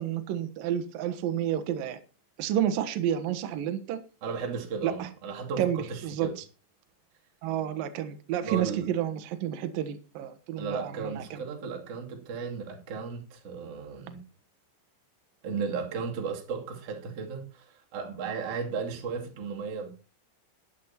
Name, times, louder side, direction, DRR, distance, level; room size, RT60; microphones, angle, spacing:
voice 1, 0.0-2.0 2.4-4.0 4.8-5.1 5.6-6.3 7.4-11.4, right 10 dB, 70° right, 10 dB, 2.2 m, -30 dB
voice 2, 4.2-6.4 8.4-8.9 10.6-14.2 15.4-20.1, right 5 dB, 40° right, 1 dB, 2.5 m, -35 dB
12.5 x 11.0 x 4.3 m, 0.34 s
omnidirectional pair, 5.7 m